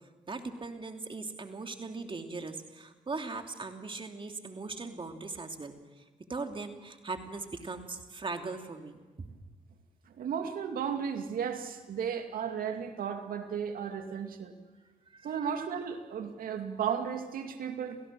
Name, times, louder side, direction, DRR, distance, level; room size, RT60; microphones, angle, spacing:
voice 1, 0.3-6.0 6.3-9.3 15.1-15.3, right 3 dB, 35° right, 5 dB, 2.9 m, -39 dB
voice 2, 10.1-14.5 15.2-18.0, right 7 dB, 65° right, 6 dB, 2.4 m, -34 dB
27.5 x 17.5 x 7.6 m, 1.3 s
supercardioid pair, 55°, 16 cm